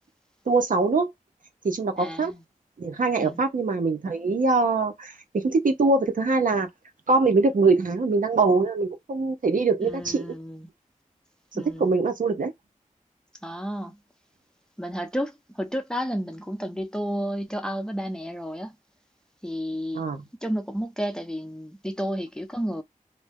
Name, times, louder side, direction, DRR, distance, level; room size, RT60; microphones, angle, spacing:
voice 1, 0.5-1.1 1.6-2.3 2.8-6.7 7.1-10.4 11.8-12.5 19.9-20.2, right 3 dB, 75° right, 0.7 m, -23 dB
voice 2, 2.0-2.4 3.2-3.4 9.8-10.7 11.5-11.9 13.4-14.0 14.8-18.7 19.4-20.0 20.4-22.8, equal, 5° left, 0.6 m, -31 dB
2.6 x 2.1 x 3.4 m
wide cardioid pair, 70°, 14 cm